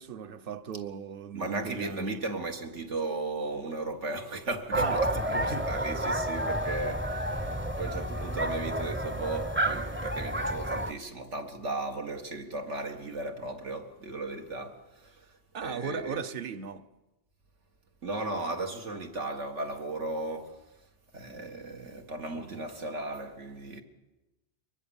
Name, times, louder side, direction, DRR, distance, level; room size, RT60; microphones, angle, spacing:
voice 1, 0.0-2.2 4.7-5.7 15.5-16.9 22.4-22.6, right 6 dB, 50° right, 1.1 m, -37 dB
voice 2, 1.3-16.2 18.0-20.6 21.1-23.8, right 2 dB, 80° right, 2.2 m, -36 dB
sound 1, 4.7-10.9, right 1 dB, 10° right, 0.7 m, -30 dB
24.0 x 20.5 x 7.2 m
omnidirectional pair, 1.2 m